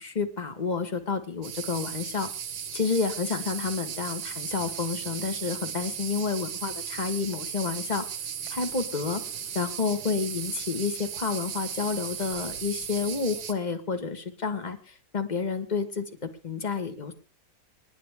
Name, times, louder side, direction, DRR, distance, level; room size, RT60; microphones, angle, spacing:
voice 1, 0.0-2.3 2.7-8.1 8.5-9.2 9.5-17.1, left 5 dB, 25° left, 9 dB, 1.5 m, -30 dB
sound 1, 1.4-13.5, right 8 dB, 90° right, 2.0 m, -36 dB
27.0 x 11.0 x 3.5 m, 0.42 s
omnidirectional pair, 2.0 m